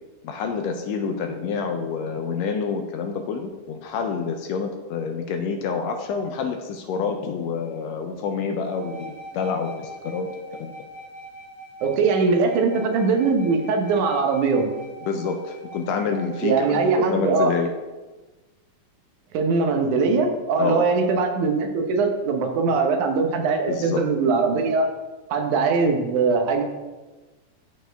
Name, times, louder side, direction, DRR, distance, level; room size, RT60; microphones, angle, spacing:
voice 1, 0.2-10.8 15.1-17.7 20.6-20.9 23.7-24.1, left 5 dB, 80° left, 6 dB, 1.6 m, -28 dB
sound 1, 8.6-16.9, right 2 dB, 40° left, 1.1 m, -42 dB
voice 2, 11.8-14.6 16.4-17.5 19.3-24.9 25.3-26.6, right 4 dB, 85° right, 4 dB, 2.4 m, -21 dB
13.0 x 4.4 x 3.4 m, 1.2 s
omnidirectional pair, 3.4 m